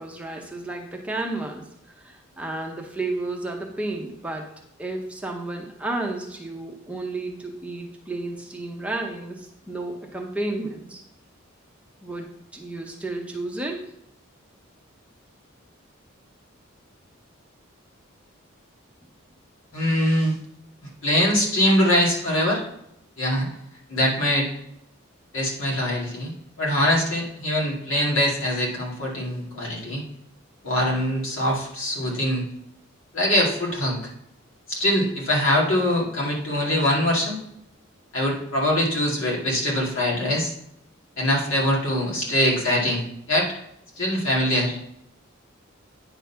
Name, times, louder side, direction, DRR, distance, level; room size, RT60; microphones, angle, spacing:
voice 1, 0.0-1.7 2.0-4.5 4.8-11.0 12.0-13.8, right 2 dB, 5° right, 1 dB, 0.7 m, -32 dB
voice 2, 19.7-20.4 21.0-22.6 23.2-23.5 23.9-24.5 25.3-26.3 26.6-30.0 30.6-32.4 33.1-34.0 34.7-37.4 38.1-40.5 41.2-43.0 43.3-43.5 44.0-44.8, left 1 dB, 70° left, -4 dB, 2.4 m, -23 dB
9.3 x 4.0 x 5.7 m, 0.77 s
head